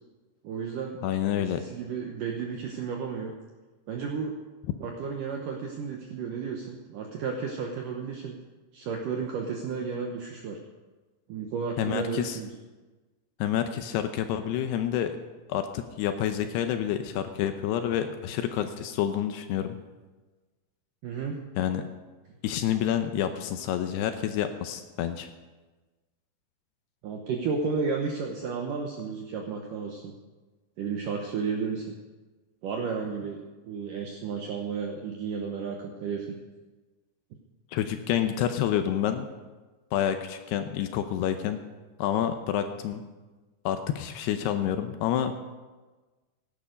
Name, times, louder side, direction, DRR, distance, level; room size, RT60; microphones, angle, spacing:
voice 1, 0.4-1.0 1.4-3.3 3.9-4.3 4.8-8.4 8.7-10.6 11.3-12.5 21.0-21.4 27.0-30.1 30.8-31.9 32.6-36.3, right 5 dB, 75° right, 2 dB, 1.9 m, -33 dB
voice 2, 1.0-1.6 11.8-12.4 13.4-15.2 15.5-19.8 21.6-21.9 22.4-25.3 37.7-39.3 39.9-41.6 42.0-43.0 43.7-45.4, left 10 dB, 80° left, 8 dB, 2.6 m, -28 dB
17.0 x 11.0 x 5.2 m, 1.2 s
omnidirectional pair, 5.1 m